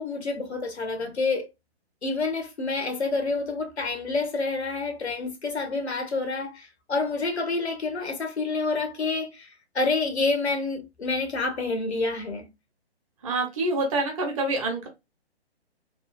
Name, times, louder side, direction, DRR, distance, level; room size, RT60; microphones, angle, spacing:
voice 1, 0.0-1.5 2.0-9.5 9.7-12.5, left 3 dB, 80° left, 1.0 m, -28 dB
voice 2, 13.2-14.9, right 2 dB, 30° right, 1.0 m, -26 dB
3.1 x 2.4 x 2.3 m
figure-of-eight pair, 135°, 32 cm